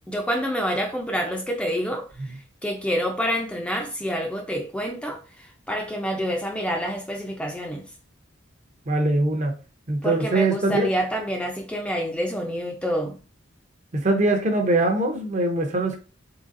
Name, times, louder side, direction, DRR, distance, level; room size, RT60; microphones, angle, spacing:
voice 1, 0.1-7.9 10.0-13.2, equal, 5° left, 0.4 m, -28 dB
voice 2, 8.9-9.5 9.9-10.9 13.9-16.0, right 2 dB, 40° right, 0.6 m, -22 dB
3.8 x 3.2 x 2.5 m
head